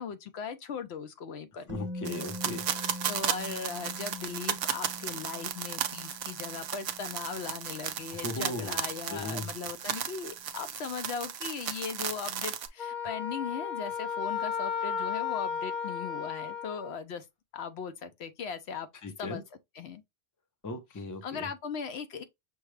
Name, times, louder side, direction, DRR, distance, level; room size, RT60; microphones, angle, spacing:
voice 1, 0.0-1.7 2.8-17.3 17.5-18.9 19.2-19.4 19.8-20.0 21.2-22.2, left 6 dB, 70° left, 0.9 m, -38 dB
voice 2, 1.7-2.6 8.1-8.8 9.1-9.5 19.0-19.4 20.6-21.5, left 2 dB, 20° left, 0.6 m, -37 dB
Musical instrument, 1.7-9.6 9.9-10.0, left 1 dB, 50° right, 0.3 m, -45 dB
sound 1, 2.0-12.7, right 9 dB, 65° right, 0.7 m, -35 dB
Wind instrument woodwind instrument, 12.8-16.9, left 7 dB, 45° left, 1.0 m, -34 dB
6.2 x 2.2 x 3.2 m
omnidirectional pair, 1.2 m